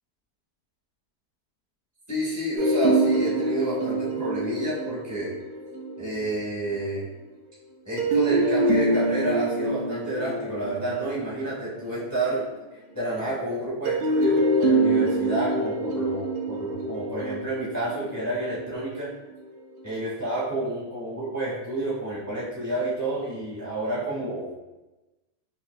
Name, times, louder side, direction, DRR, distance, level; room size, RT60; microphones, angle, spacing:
voice 1, 2.1-5.3 6.0-7.1 7.8-12.5 12.9-19.1 19.8-24.5, right 1 dB, 15° left, -8 dB, 0.8 m, -30 dB
sound 1, 2.6-6.4 8.0-12.4 13.9-19.0, right 2 dB, 90° right, 1.3 m, -25 dB
5.5 x 2.4 x 2.2 m, 1.0 s
omnidirectional pair, 1.9 m